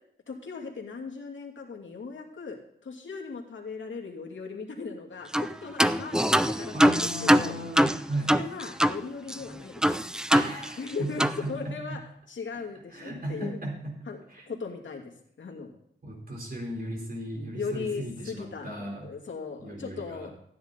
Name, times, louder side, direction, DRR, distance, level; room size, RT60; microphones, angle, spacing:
voice 1, 0.3-7.5 8.3-10.1 10.8-11.2 11.5-12.0 12.3-13.6 14.1-14.2 14.5-15.8 17.5-20.3, left 5 dB, 75° left, 0 dB, 2.6 m, -38 dB
sound 1, 5.3-5.5 5.8-9.0 9.3-9.4 9.8-10.9 11.2-11.4, equal, 5° right, 0.5 m, -23 dB
voice 2, 6.7-8.4 10.3-12.0 12.9-14.0 14.3-14.5 16.0-19.1 19.6-20.3, right 1 dB, 50° right, 0 dB, 4.2 m, -36 dB
15.5 x 10.0 x 4.0 m, 0.71 s
wide cardioid pair, 100°, 20 cm